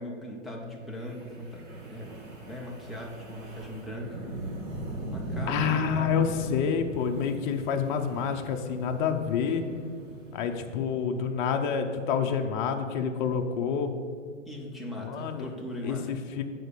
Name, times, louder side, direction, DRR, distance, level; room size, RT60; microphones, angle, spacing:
voice 1, 0.0-2.1 2.4-4.3 5.1-6.3 14.5-16.2, left 1 dB, ahead, -3 dB, 0.3 m, -39 dB
Wind, 0.9-11.2, right 1 dB, 25° right, 1.4 m, -40 dB
voice 2, 5.5-9.6 10.3-13.9 15.0-15.5 15.8-16.4, left 7 dB, 40° left, 5 dB, 0.7 m, -28 dB
7.9 x 4.2 x 6.6 m, 2.1 s
hypercardioid pair, 115°, 37 cm